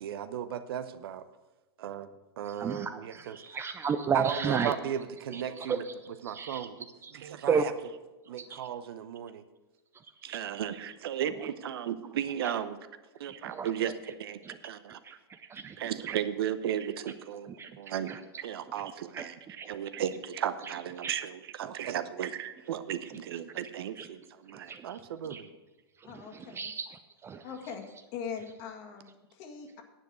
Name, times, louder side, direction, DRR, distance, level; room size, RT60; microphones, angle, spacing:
voice 1, 0.0-1.2 1.8-2.1 2.4-3.4 4.1-5.8 6.2-6.9 7.1-7.7 8.3-9.4 10.2-12.8 13.2-15.0 15.4-19.4 19.7-25.5, right 9 dB, 65° right, 12 dB, 0.8 m, -35 dB
voice 2, 2.4-4.7 5.3-5.9 6.2-6.7 7.0-7.1 7.4-7.8 8.3-8.6 10.0-10.4 11.4-11.5 12.4-12.5 13.4-13.7 14.4-14.6 15.0-15.1 15.5-16.2 17.6-18.2 19.1-19.2 19.5-19.7 20.6-20.7 21.0-21.2 24.0-24.1 24.5-25.5 26.0-27.4, right 6 dB, 20° right, 10 dB, 0.5 m, -34 dB
voice 3, 26.0-26.7 27.4-27.8 28.1-29.8, left 6 dB, 50° left, 3 dB, 1.9 m, -41 dB
10.0 x 8.0 x 6.2 m, 1.1 s
hypercardioid pair, 110°, 13 cm